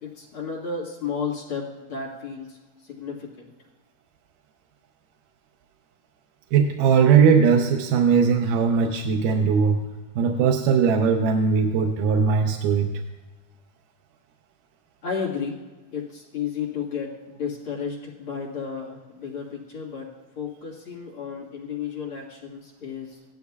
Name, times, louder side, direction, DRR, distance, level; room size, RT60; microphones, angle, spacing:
voice 1, 0.0-2.6 2.8-3.5 15.0-15.6 15.9-23.2, left 6 dB, 45° left, -4 dB, 2.2 m, -33 dB
voice 2, 6.5-9.8 10.2-12.9, right 6 dB, 80° right, 3 dB, 2.3 m, -19 dB
16.5 x 11.5 x 2.3 m, 1.2 s
omnidirectional pair, 3.7 m